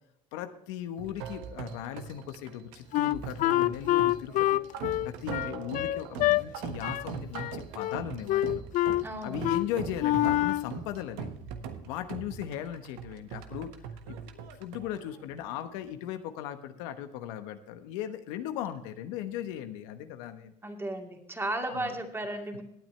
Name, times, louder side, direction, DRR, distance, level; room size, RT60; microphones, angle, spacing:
voice 1, 0.3-4.6 5.0-8.6 9.2-11.3 11.8-13.7 14.1-20.5 21.7-22.0, left 10 dB, 80° left, 9 dB, 1.1 m, -37 dB
sound 1, 1.0-15.8, right 7 dB, 80° right, 1.4 m, -41 dB
Wind instrument woodwind instrument, 2.9-6.4 6.8-7.1 7.3-8.0 8.3-9.0 9.4-9.7 10.0-10.7, left 15 dB, 50° left, 0.4 m, -26 dB
voice 2, 9.0-9.4 20.6-22.6, right 1 dB, 15° right, 3 dB, 2.5 m, -34 dB
17.5 x 9.1 x 3.3 m, 0.79 s
supercardioid pair, 90°, 16 cm